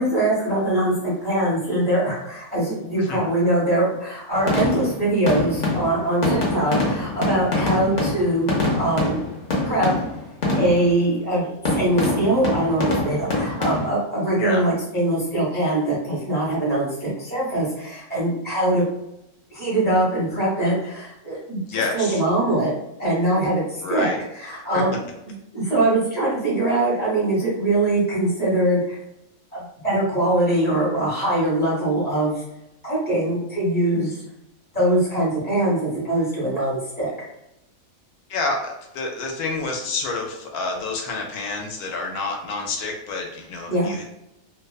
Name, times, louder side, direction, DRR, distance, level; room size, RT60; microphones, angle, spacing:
voice 1, 0.0-9.2 9.6-9.9 10.6-18.9 19.5-22.7 23.0-24.9 25.5-29.0 29.5-32.4 32.8-34.2 34.7-37.1 43.7-43.9, right 1 dB, 5° left, -7 dB, 1.0 m, -22 dB
sound 1, 4.3-11.0 11.6-13.9, left 2 dB, 45° left, 0.5 m, -24 dB
voice 2, 21.7-22.2 23.8-24.2 24.7-24.8 38.3-44.0, left 3 dB, 85° left, 1 dB, 1.1 m, -28 dB
2.5 x 2.3 x 2.3 m, 0.83 s
omnidirectional pair, 1.6 m